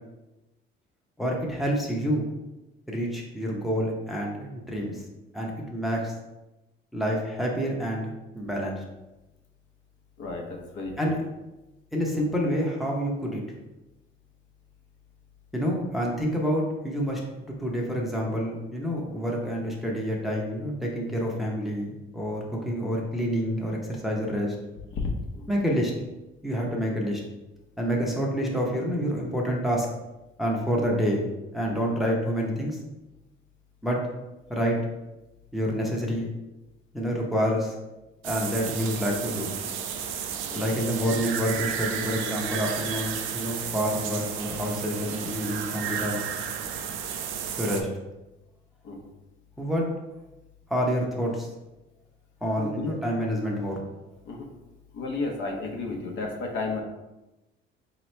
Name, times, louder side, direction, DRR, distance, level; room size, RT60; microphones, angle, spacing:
voice 1, 1.2-2.3 2.9-5.0 5.3-6.1 6.9-8.8 11.0-11.2 11.9-13.4 15.5-24.5 25.5-25.9 26.4-27.2 27.8-29.9 30.4-31.3 31.5-32.8 33.8-34.0 34.5-34.8 35.5-36.3 36.9-37.8 38.2-39.5 40.5-46.3 47.6-47.9 49.6-49.8 50.7-51.5 52.4-53.8, equal, ahead, -2 dB, 0.6 m, -28 dB
voice 2, 10.2-11.1 12.1-12.2 25.3-25.4 40.5-40.7 48.8-49.0 52.6-52.9 54.3-54.5 54.9-56.8, left 3 dB, 65° left, 1 dB, 0.8 m, -33 dB
sound 1, 38.2-47.8, right 7 dB, 75° right, 0.5 m, -32 dB
3.9 x 3.0 x 3.2 m, 1.0 s
cardioid pair, 125°, 21 cm